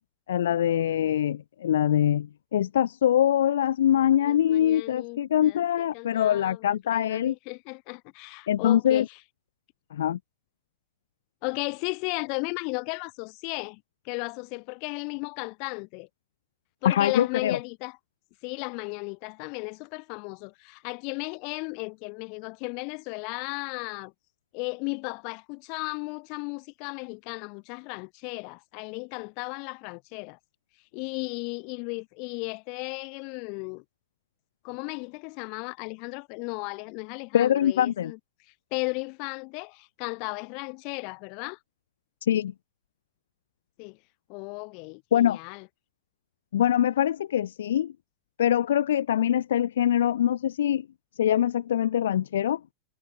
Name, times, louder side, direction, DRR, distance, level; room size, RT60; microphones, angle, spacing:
voice 1, 0.3-7.3 8.5-9.0 9.9-10.2 16.8-17.6 37.3-38.1 42.2-42.5 45.1-45.4 46.5-47.9 48.4-50.8 51.2-52.6, left 10 dB, 60° left, 1.0 m, -23 dB
voice 2, 4.2-9.2 11.4-16.1 16.8-18.0 18.4-24.1 24.5-30.4 30.9-33.8 34.6-38.2 38.7-41.6 43.8-44.0 44.3-45.7, left 36 dB, 45° left, 7.8 m, -35 dB
figure-of-eight pair, 90°, 0 cm